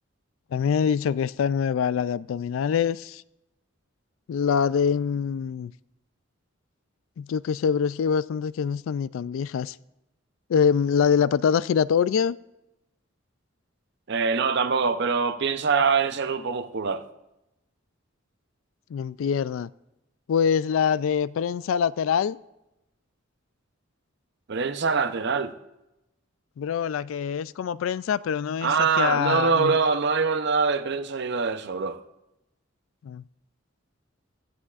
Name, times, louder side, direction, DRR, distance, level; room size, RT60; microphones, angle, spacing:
voice 1, 0.5-3.2 4.3-5.7 7.2-9.7 10.5-12.4 18.9-19.7 20.3-22.4 26.6-29.8 33.0-33.2, left 7 dB, 75° left, 0.3 m, -24 dB
voice 2, 14.1-17.1 24.5-25.5 28.6-32.0, right 5 dB, 60° right, 0.7 m, -24 dB
16.5 x 14.0 x 2.4 m
head